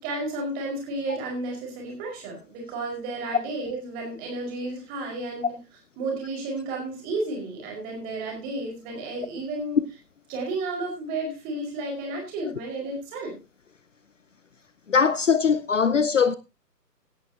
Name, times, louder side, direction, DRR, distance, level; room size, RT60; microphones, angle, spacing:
voice 1, 0.0-5.6 6.0-9.8 10.3-13.3, right 2 dB, 15° right, 5.0 m, -32 dB
voice 2, 14.9-16.4, left 6 dB, 50° left, 0.8 m, -21 dB
17.0 x 11.0 x 2.8 m
figure-of-eight pair, 140°, 50 cm